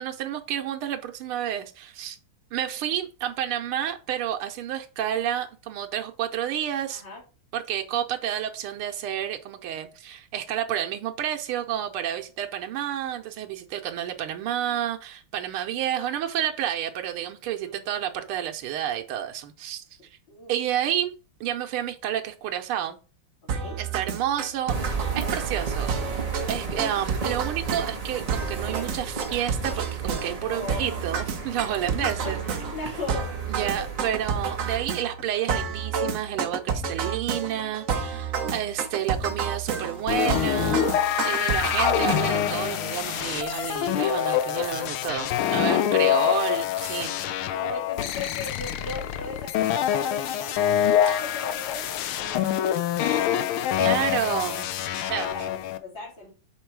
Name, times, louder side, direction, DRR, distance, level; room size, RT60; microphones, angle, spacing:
voice 1, 0.0-2.2 2.5-7.0 7.5-19.8 20.5-21.1 21.4-23.0 23.8-24.7 25.2-32.4 33.5-40.9 41.2-47.2 51.1-51.2 52.4-52.5 53.8-54.7 55.1-55.4, right 10 dB, 90° right, 1.6 m, -30 dB
voice 2, 6.9-7.2 17.5-17.8 20.3-20.5 23.5-23.8 30.4-31.0 32.0-33.3 33.8-33.9 45.7-46.5 47.5-50.7 51.0-53.5 53.8-54.5 54.8-56.3, left 3 dB, 60° left, 4.1 m, -38 dB
sound 1, 23.5-42.6, right 6 dB, 55° right, 0.9 m, -30 dB
sound 2, 24.7-34.9, right 4 dB, 20° right, 1.1 m, -34 dB
sound 3, 40.1-55.8, left 11 dB, 80° left, 1.5 m, -25 dB
6.6 x 4.5 x 4.6 m
omnidirectional pair, 2.3 m